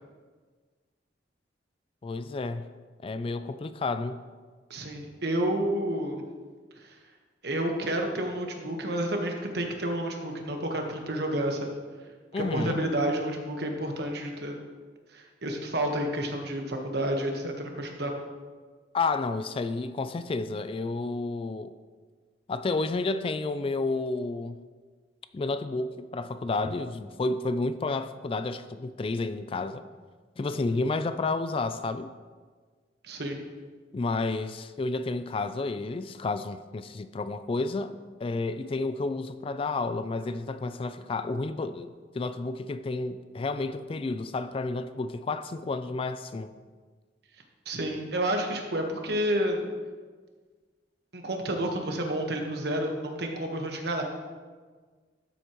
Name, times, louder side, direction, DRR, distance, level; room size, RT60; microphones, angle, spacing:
voice 1, 2.0-2.7 3.0-4.2 12.3-12.8 18.9-21.7 22.5-24.6 25.3-29.8 30.4-32.1 33.9-37.9 38.2-46.5, left 3 dB, 30° left, 0.3 m, -31 dB
voice 2, 4.7-6.2 6.8-6.9 7.4-11.8 12.4-14.5 15.1-18.1 30.7-30.8 33.0-33.4 47.6-49.6 51.1-54.0, right 1 dB, 60° right, 1.3 m, -30 dB
12.5 x 8.0 x 3.0 m
head